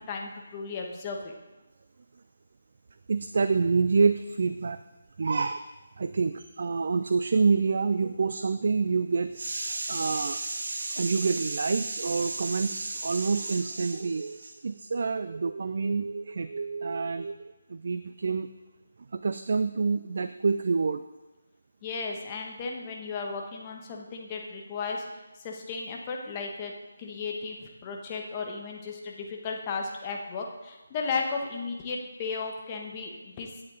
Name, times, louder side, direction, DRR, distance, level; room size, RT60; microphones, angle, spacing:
voice 1, 0.0-1.3 21.8-25.0 25.4-26.7 27.0-33.5, left 4 dB, 25° left, 1 dB, 1.3 m, -35 dB
voice 2, 3.1-4.8 5.2-5.7 6.0-17.4 17.7-18.5 19.1-21.0, right 4 dB, 50° right, 10 dB, 0.4 m, -27 dB
16.0 x 7.8 x 3.9 m, 1.1 s
figure-of-eight pair, 150°, 0 cm